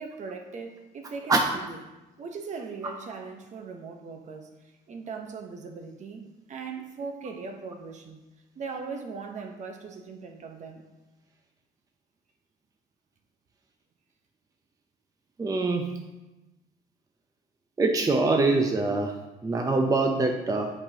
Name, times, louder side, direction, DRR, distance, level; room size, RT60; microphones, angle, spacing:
voice 1, 0.0-1.8 2.2-4.5 4.9-8.2 8.6-10.8, right 5 dB, 45° right, 4 dB, 0.9 m, -39 dB
voice 2, 15.4-15.8 17.8-19.1 19.4-20.7, right 3 dB, 20° right, 3 dB, 0.6 m, -24 dB
8.2 x 5.0 x 2.8 m, 1.0 s
cardioid pair, 110°, 17 cm